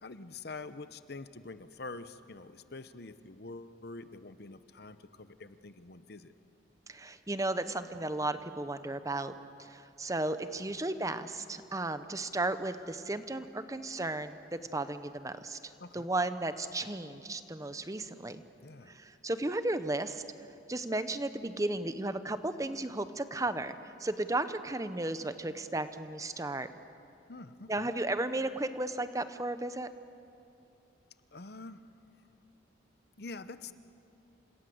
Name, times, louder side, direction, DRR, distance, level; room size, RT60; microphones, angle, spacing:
voice 1, 0.0-6.3 10.7-10.8 15.8-16.1 18.6-18.9 27.3-27.9 31.3-31.8 33.2-33.7, left 3 dB, 55° left, 12 dB, 0.9 m, -46 dB
voice 2, 6.9-9.3 9.6-18.4 18.9-20.2 20.7-26.7 27.7-29.9, right 2 dB, 15° right, 11 dB, 0.9 m, -34 dB
28.5 x 26.0 x 7.9 m, 2.7 s
head